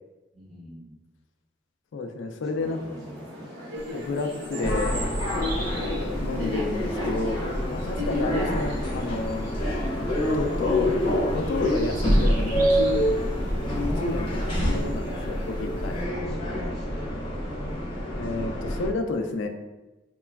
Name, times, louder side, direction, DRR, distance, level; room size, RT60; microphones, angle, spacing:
voice 1, 0.3-0.9 2.5-3.6 8.0-8.2 16.1-17.2, right 1 dB, ahead, -9 dB, 0.8 m, -42 dB
voice 2, 1.9-2.8 3.9-5.0 5.6-7.4 7.7-9.5 10.3-13.1 13.7-16.0 18.1-19.5, left 3 dB, 80° left, 6 dB, 0.3 m, -30 dB
sound 1, 2.6-14.9, left 1 dB, 90° right, 1.0 m, -37 dB
sound 2, 3.8-16.0, right 1 dB, 45° right, 0.6 m, -41 dB
sound 3, 4.6-18.9, equal, 30° left, 0.6 m, -27 dB
2.9 x 2.2 x 2.2 m, 1.1 s
head